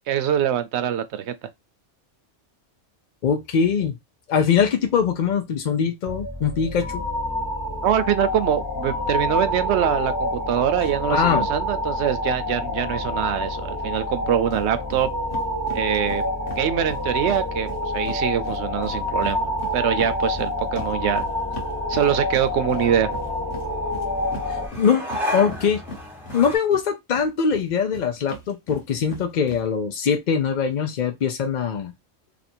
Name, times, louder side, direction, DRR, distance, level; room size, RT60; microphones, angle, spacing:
voice 1, 0.1-1.5 7.8-15.1 15.7-16.2 16.6-21.2 21.9-23.1, right 10 dB, 70° right, 0.8 m, -24 dB
voice 2, 3.2-3.9 4.3-7.0 11.1-11.5 24.5-25.1 25.3-25.8 26.3-31.9, left 6 dB, 55° left, 0.5 m, -22 dB
sound 1, 6.1-24.7, left 1 dB, 20° left, 0.8 m, -27 dB
sound 2, 14.5-14.6 14.9-15.0 15.3-18.2 18.4-26.8 27.1-29.6, equal, 75° left, 1.4 m, -39 dB
sound 3, 17.1-26.6, left 1 dB, ahead, 1.2 m, -36 dB
2.8 x 2.5 x 4.2 m
omnidirectional pair, 1.2 m